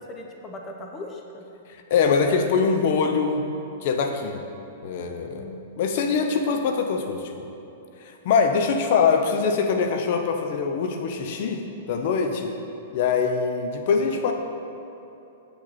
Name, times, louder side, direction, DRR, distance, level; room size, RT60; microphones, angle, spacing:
voice 1, 0.0-1.5 5.3-5.6 8.4-8.7, left 2 dB, 25° left, 2 dB, 0.8 m, -39 dB
voice 2, 1.9-3.4 3.8-4.4 4.8-5.5 5.8-7.2 8.0-11.6 11.9-12.5 12.9-14.3, left 5 dB, 55° left, 5 dB, 0.9 m, -23 dB
7.9 x 6.6 x 4.2 m, 2.9 s
hypercardioid pair, 130°, 0 cm